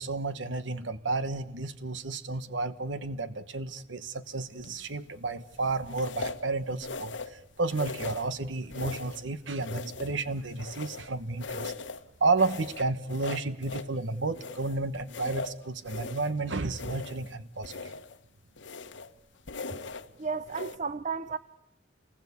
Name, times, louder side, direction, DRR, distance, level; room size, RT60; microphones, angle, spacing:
voice 1, 0.0-11.7 12.2-17.9, right 3 dB, 80° right, 13 dB, 1.2 m, -32 dB
sound 1, 4.6-5.0 5.9-6.5 6.8-7.4 7.7-8.3 8.7-9.3 9.6-11.1 11.4-12.0 12.4-13.9 14.3-16.4 16.7-17.3 17.6-18.2 18.6-19.1 19.5-20.1 20.5-20.8, left 3 dB, 75° left, 1.4 m, -40 dB
voice 2, 20.2-21.4, right 5 dB, 40° right, 13 dB, 0.9 m, -33 dB
28.0 x 20.0 x 8.4 m, 0.83 s
head